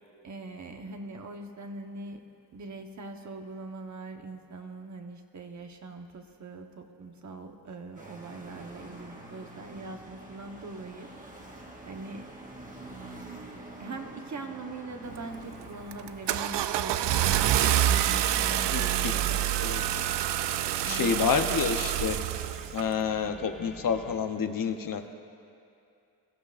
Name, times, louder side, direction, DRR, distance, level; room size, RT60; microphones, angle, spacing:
voice 1, 0.2-2.2 2.5-11.1 11.3-12.4 13.8-19.4 20.8-21.2, right 3 dB, 45° right, 4 dB, 1.1 m, -42 dB
sound 1, 8.0-24.4, right 2 dB, 20° right, 1.5 m, -49 dB
Car / Engine starting, 15.1-15.5 15.9-22.9, right 12 dB, 80° right, 0.5 m, -27 dB
sound 2, 17.9-24.2, left 1 dB, ahead, 1.9 m, -50 dB
voice 2, 20.9-22.2 22.7-25.1, left 6 dB, 50° left, 6 dB, 0.8 m, -28 dB
21.5 x 14.5 x 2.5 m, 2.5 s
cardioid pair, 110°, 42 cm